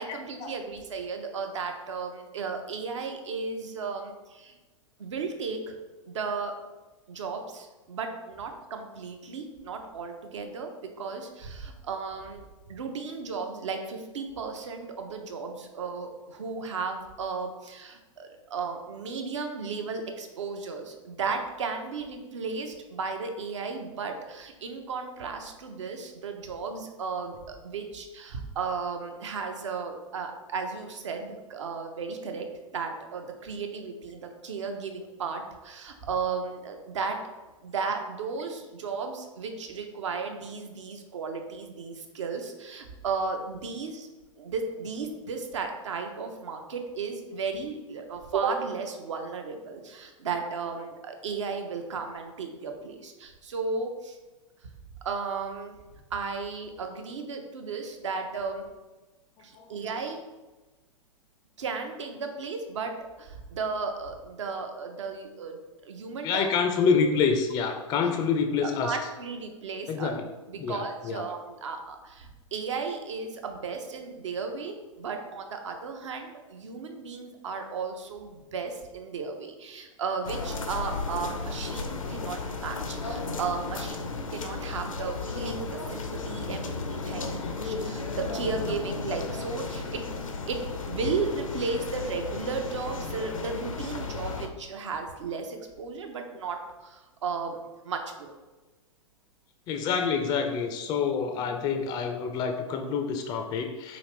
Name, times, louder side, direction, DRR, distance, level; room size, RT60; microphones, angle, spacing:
voice 1, 0.0-4.6 5.0-5.8 6.1-6.6 7.1-10.7 11.0-12.4 12.7-32.5 32.7-37.2 37.6-44.1 44.4-54.2 55.0-55.8 56.1-58.7 59.4-60.2 61.6-62.9 63.2-66.5 68.6-70.1 70.5-90.0 90.5-98.3, right 5 dB, 65° right, 4 dB, 0.6 m, -34 dB
voice 2, 66.2-69.0 69.9-70.2 70.6-71.2 99.7-104.0, left 5 dB, 25° left, 5 dB, 0.3 m, -27 dB
sound 1, 80.2-94.5, left 4 dB, 80° left, 0.5 m, -34 dB
4.7 x 2.4 x 3.4 m, 1.2 s
figure-of-eight pair, 100°, 17 cm